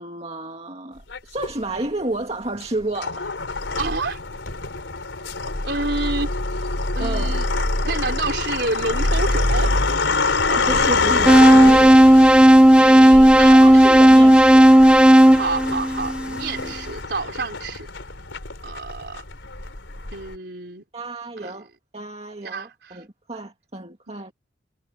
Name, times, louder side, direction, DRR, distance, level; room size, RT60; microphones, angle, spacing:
voice 1, 0.0-3.3 7.0-7.4 10.5-12.0 13.5-14.7 16.6-16.8 20.9-21.7 21.9-24.3, right 2 dB, 35° right, 1.9 m, -31 dB
sound 1, 1.1-1.8 2.6-20.3, left 3 dB, 85° left, 4.0 m, -25 dB
voice 2, 3.7-4.2 5.6-6.3 6.9-7.5 7.8-9.8 12.8-14.1 15.3-17.9 18.6-19.2 20.1-20.8 21.4-21.5 22.4-23.0 24.1-24.3, right 3 dB, 60° right, 4.3 m, -29 dB
sound 2, 11.3-16.4, right 1 dB, 5° right, 0.6 m, -11 dB
head